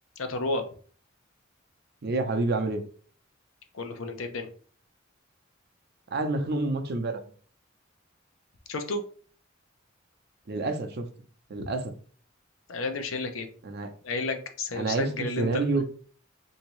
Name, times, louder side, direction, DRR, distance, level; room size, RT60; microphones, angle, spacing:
voice 1, 0.2-0.6 3.7-4.5 8.7-9.0 11.6-11.7 12.7-13.5 14.0-15.5, left 3 dB, 90° left, 0.6 m, -31 dB
voice 2, 2.0-2.8 6.1-7.2 10.5-11.1 11.5-11.9 13.6-13.9 14.7-15.8, right 3 dB, 55° right, 0.5 m, -28 dB
3.5 x 2.7 x 3.1 m
head